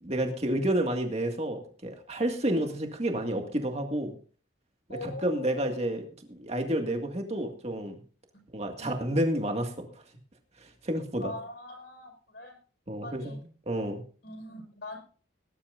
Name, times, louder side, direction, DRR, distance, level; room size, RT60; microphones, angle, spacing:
voice 1, 0.0-4.1 4.9-8.0 8.5-9.9 10.6-11.3 12.9-13.4 13.7-14.0, right 1 dB, 30° right, 4 dB, 2.0 m, -30 dB
voice 2, 4.9-5.6 8.8-9.0 11.2-12.6 13.0-13.4 14.2-15.0, left 2 dB, 60° left, 1 dB, 5.1 m, -42 dB
19.5 x 11.5 x 2.6 m, 0.40 s
head